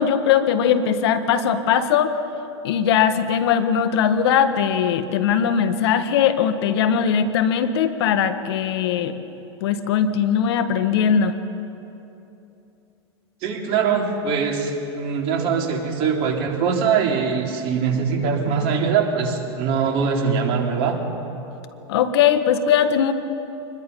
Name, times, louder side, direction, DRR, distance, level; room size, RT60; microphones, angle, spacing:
voice 1, 0.0-2.2 2.6-9.2 9.6-11.3 21.9-23.1, left 8 dB, 65° left, 10 dB, 1.6 m, -20 dB
voice 2, 13.4-21.0, right 6 dB, 45° right, 1 dB, 3.5 m, -22 dB
25.0 x 21.0 x 5.5 m, 2.9 s
hypercardioid pair, 110°, 14 cm